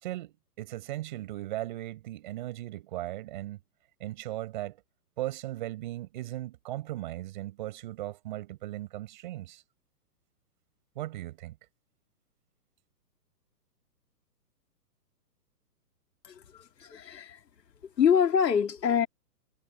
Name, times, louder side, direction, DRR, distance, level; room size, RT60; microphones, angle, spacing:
voice 1, 0.0-3.6 4.0-4.8 5.2-9.6 10.9-11.6, right 15 dB, 30° right, 6.7 m, -37 dB
voice 2, 16.2-17.4 18.0-19.1, left 7 dB, 80° left, 2.8 m, -25 dB
hypercardioid pair, 175°, 49 cm